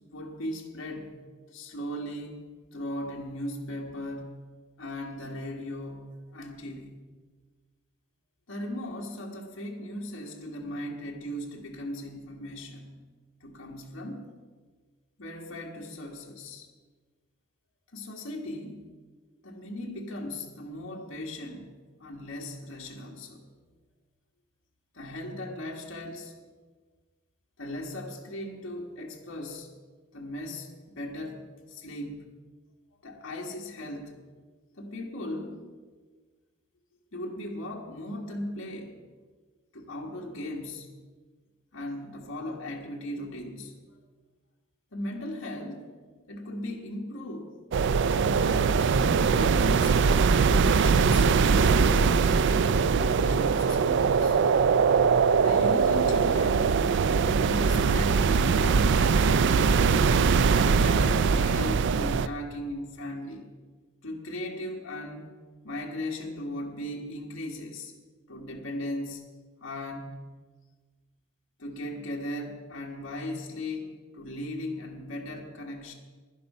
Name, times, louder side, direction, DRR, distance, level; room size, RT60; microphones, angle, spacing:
voice 1, 0.1-1.1 1.5-2.4 2.7-4.4 4.8-6.9 8.5-12.9 13.4-14.3 15.2-16.7 17.9-18.8 19.4-21.7 22.0-23.4 24.9-26.3 27.6-29.7 30.1-31.4 31.7-32.2 33.0-34.1 34.8-35.6 37.1-39.0 39.7-40.9 41.7-44.0 44.9-47.5 48.0-48.7 49.3-52.3 52.9-54.4 55.4-56.8 57.2-60.1 60.5-63.5 64.0-65.2 65.6-67.9 68.3-69.2 69.6-70.2 71.6-75.9, left 1 dB, 70° left, -1 dB, 1.5 m, -37 dB
sound 1, 47.7-62.3, right 5 dB, 60° right, 0.4 m, -22 dB
11.0 x 11.0 x 5.5 m, 1.4 s
head